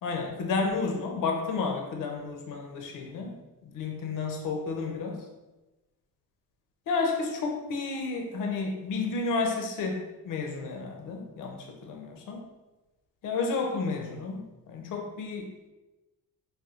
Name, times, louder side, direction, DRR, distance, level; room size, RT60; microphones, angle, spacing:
voice 1, 0.0-5.2 6.9-12.4 13.2-15.5, left 4 dB, 60° left, 2 dB, 0.6 m, -31 dB
4.2 x 2.2 x 2.4 m, 1.1 s
cardioid pair, 130°, 37 cm